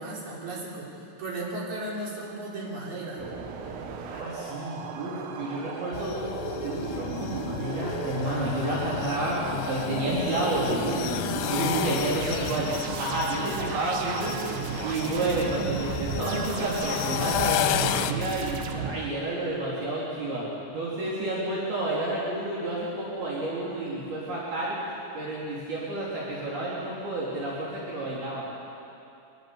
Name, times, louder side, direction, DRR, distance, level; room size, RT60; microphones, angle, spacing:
voice 1, 0.0-3.2 11.5-12.0, right 2 dB, 45° right, -5 dB, 5.5 m, -35 dB
sound 1, 3.2-18.9, right 5 dB, 85° right, 3.7 m, -35 dB
voice 2, 4.1-6.2 6.6-11.2 11.5-12.7 13.0-24.8 25.1-28.4, right 2 dB, 65° right, -6 dB, 4.9 m, -30 dB
sound 2, 5.9-18.1, left 11 dB, 90° left, 3.1 m, -32 dB
24.5 x 21.0 x 7.0 m, 2.7 s
omnidirectional pair, 4.9 m